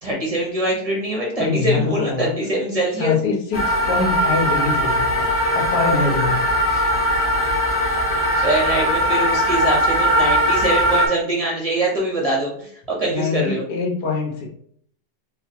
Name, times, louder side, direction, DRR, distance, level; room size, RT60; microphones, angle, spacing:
voice 1, 0.0-3.1 6.7-6.9 8.3-13.6, right 1 dB, 40° right, -3 dB, 0.5 m, -23 dB
voice 2, 1.4-2.3 3.0-6.5 13.1-14.5, left 4 dB, 75° left, -1 dB, 1.5 m, -24 dB
sound 1, 3.5-11.1, equal, 55° left, 1.7 m, -19 dB
4.6 x 2.2 x 2.7 m, 0.62 s
omnidirectional pair, 1.8 m